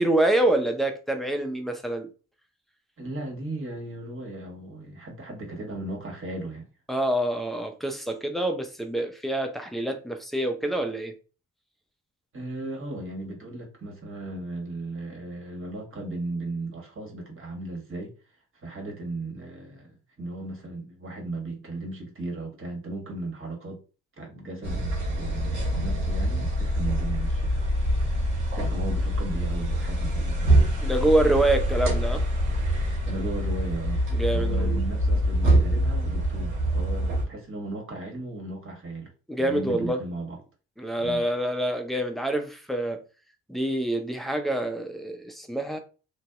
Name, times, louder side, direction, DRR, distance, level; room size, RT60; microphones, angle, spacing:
voice 1, 0.0-2.1 6.9-11.1 30.8-32.2 34.1-34.8 39.3-40.0 40.8-43.0 43.5-45.8, right 1 dB, ahead, 0.5 m, -26 dB
voice 2, 3.0-6.7 12.3-18.1 18.6-19.9 20.2-23.8 24.2-27.7 28.1-30.6 33.0-34.0 34.3-39.1 39.4-40.4 41.0-41.2, right 2 dB, 35° right, 1.2 m, -36 dB
sound 1, 24.6-37.2, right 1 dB, 90° right, 0.8 m, -25 dB
2.6 x 2.1 x 2.3 m
hypercardioid pair, 45°, 38 cm